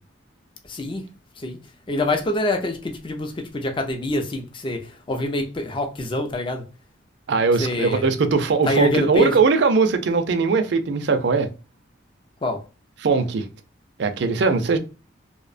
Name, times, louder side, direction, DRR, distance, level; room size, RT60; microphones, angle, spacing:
voice 1, 0.7-1.1 1.4-1.6 1.9-6.6 7.6-8.1 8.7-9.3 12.4-12.6, left 1 dB, 25° left, 0.4 m, -25 dB
voice 2, 7.3-11.5 13.0-13.5 14.0-14.8, right 4 dB, 60° right, 0.4 m, -20 dB
2.7 x 2.1 x 2.4 m
head